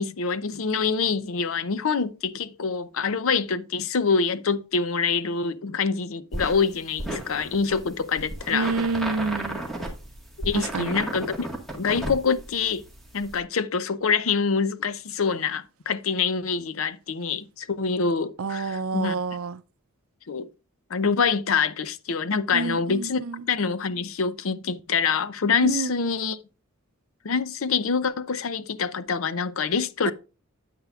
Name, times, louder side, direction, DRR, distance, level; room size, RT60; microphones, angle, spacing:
voice 1, 0.0-8.7 10.4-11.5 11.8-12.8 13.1-19.2 20.3-20.5 20.9-23.2 23.5-26.4 27.2-30.1, left 5 dB, 75° left, 0.6 m, -25 dB
sound 1, 6.3-13.4, right 1 dB, ahead, 1.6 m, -34 dB
voice 2, 8.5-9.7 10.5-11.0 18.4-19.6 22.5-23.5 25.6-25.9 30.0-30.1, right 4 dB, 85° right, 0.5 m, -28 dB
9.0 x 8.4 x 2.4 m
head